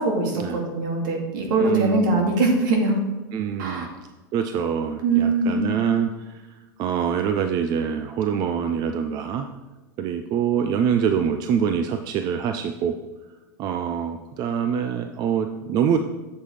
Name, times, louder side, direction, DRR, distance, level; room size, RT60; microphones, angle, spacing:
voice 1, 0.0-3.0 3.6-3.9 5.0-5.7, right 3 dB, 70° right, 1 dB, 2.3 m, -22 dB
voice 2, 1.6-2.3 3.3-3.9 4.3-6.3 6.8-9.4 10.0-12.9 13.6-16.0, right 8 dB, 35° right, 7 dB, 0.5 m, -25 dB
8.4 x 7.4 x 3.3 m, 1.2 s
supercardioid pair, 130°, 11 cm